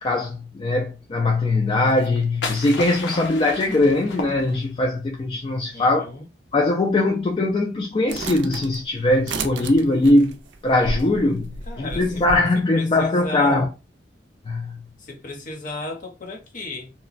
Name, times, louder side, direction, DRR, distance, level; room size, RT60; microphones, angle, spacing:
voice 1, 0.0-6.1 6.5-11.5 11.8-13.7 14.5-14.8, left 2 dB, 30° left, 0.3 m, -21 dB
sound 1, 1.9-4.9, left 4 dB, 80° left, 0.6 m, -33 dB
voice 2, 5.7-6.3 11.7-12.2 12.7-13.7 15.0-16.9, left 2 dB, 45° left, 0.7 m, -34 dB
sound 2, 8.1-12.4, right 3 dB, 80° right, 0.4 m, -32 dB
2.9 x 2.2 x 2.4 m
head